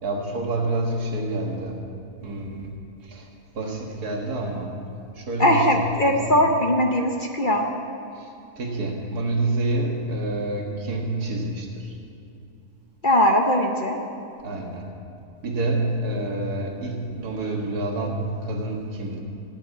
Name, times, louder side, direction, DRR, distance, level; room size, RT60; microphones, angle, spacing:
voice 1, 0.0-1.8 2.2-2.7 3.0-3.3 3.6-4.7 5.2-6.4 8.2-8.3 8.6-11.9 14.4-14.8 15.4-19.2, right 2 dB, 75° right, 1 dB, 2.1 m, -28 dB
voice 2, 5.4-7.7 13.0-14.0, equal, 40° left, 2 dB, 0.9 m, -20 dB
14.5 x 7.1 x 9.4 m, 2.6 s
omnidirectional pair, 1.6 m